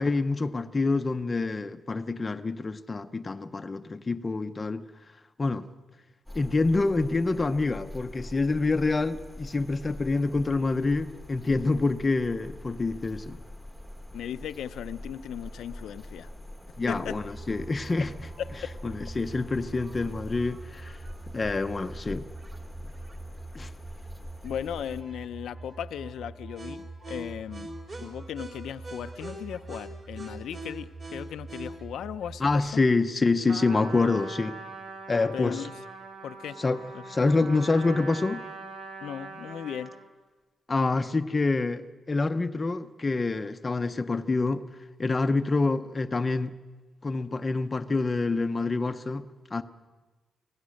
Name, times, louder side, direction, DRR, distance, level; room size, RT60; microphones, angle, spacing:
voice 1, 0.0-4.8 5.4-5.7 6.3-13.4 16.8-18.1 18.8-21.0 21.3-22.3 23.5-23.7 32.4-34.6 35.1-35.6 36.6-38.4 40.7-44.6 45.0-46.5 47.0-49.6, left 3 dB, 20° left, 0.6 m, -27 dB
sound 1, 6.3-25.0, left 1 dB, ahead, 1.2 m, -44 dB
voice 2, 14.1-16.3 16.9-17.2 18.4-18.7 24.4-27.7 28.0-32.8 35.3-35.8 36.2-36.6 36.9-37.0 37.3-37.5 39.0-39.9, left 9 dB, 90° left, 0.6 m, -37 dB
sound 2, 17.2-32.6, right 2 dB, 30° right, 3.3 m, -43 dB
Trumpet, 33.5-40.1, right 4 dB, 70° right, 2.2 m, -42 dB
24.5 x 17.0 x 6.4 m
wide cardioid pair, 180°, 0 cm